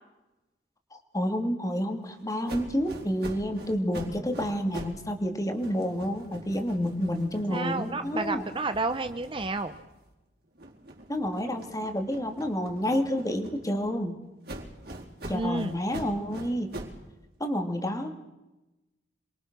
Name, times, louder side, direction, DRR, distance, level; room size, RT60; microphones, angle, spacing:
voice 1, 1.1-8.5 11.1-14.2 15.3-16.7 17.4-18.1, equal, 20° left, 6 dB, 2.6 m, -29 dB
sound 1, 2.5-5.1 5.4-10.1 10.6-13.9 14.4-17.0, right 1 dB, 55° right, 4.4 m, -43 dB
voice 2, 7.5-9.7 15.3-15.8, right 3 dB, 25° right, 9 dB, 0.8 m, -30 dB
27.5 x 22.5 x 6.2 m, 1.0 s
head